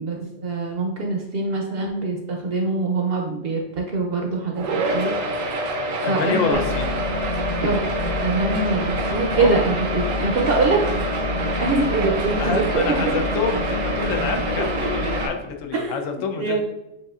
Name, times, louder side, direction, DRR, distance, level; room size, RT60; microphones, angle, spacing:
voice 1, 0.0-4.6 4.9-5.1 6.1-6.6 7.6-7.8 8.2-10.8 11.6-13.2 14.6-14.7 15.7-16.6, right 3 dB, 60° right, 0 dB, 0.7 m, -24 dB
sound 1, 4.6-15.3, right 2 dB, 85° right, 1.1 m, -27 dB
voice 2, 6.0-6.9 9.3-9.6 12.4-16.6, left 5 dB, 80° left, 5 dB, 1.0 m, -27 dB
sound 2, 6.5-15.3, left 4 dB, 65° left, 0.7 m, -29 dB
7.3 x 2.6 x 2.4 m, 0.91 s
omnidirectional pair, 1.3 m